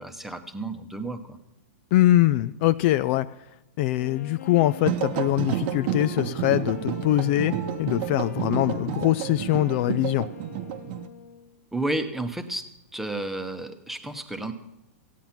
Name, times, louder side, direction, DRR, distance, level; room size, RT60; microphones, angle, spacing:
voice 1, 0.0-1.4 11.7-12.6 12.9-14.5, right 2 dB, 5° right, 7 dB, 1.0 m, -31 dB
voice 2, 1.9-3.3 3.8-10.3, left 15 dB, 50° left, 13 dB, 0.4 m, -23 dB
Wind instrument woodwind instrument, 3.9-11.6, left 8 dB, 75° left, 0.8 m, -43 dB
sound 1, 4.8-11.1, right 11 dB, 45° right, 0.9 m, -30 dB
15.0 x 9.2 x 5.8 m, 0.89 s
hypercardioid pair, 125°, 8 cm